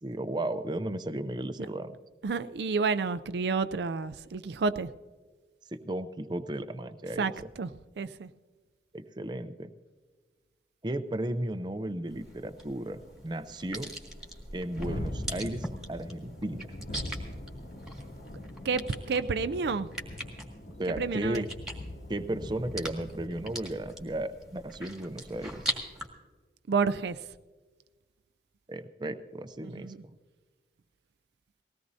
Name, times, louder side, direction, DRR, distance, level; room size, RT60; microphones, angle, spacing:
voice 1, 0.0-2.0 5.7-7.3 8.9-9.7 10.8-13.9 14.5-16.7 20.7-21.5 22.1-25.7 28.7-29.9, right 1 dB, 25° right, 9 dB, 0.5 m, -35 dB
voice 2, 2.2-4.9 7.2-7.3 7.6-7.7 8.0-8.3 18.6-19.9 20.9-21.5 26.7-27.2 29.6-30.0, right 4 dB, 70° right, 12 dB, 0.4 m, -30 dB
Thunderstorm, 11.3-11.4 11.8-11.9 12.2-25.8, left 1 dB, 85° left, 2.4 m, -43 dB
sound 1, 12.1-26.1, right 1 dB, 5° right, 1.8 m, -42 dB
19.5 x 17.0 x 2.7 m, 1.4 s
head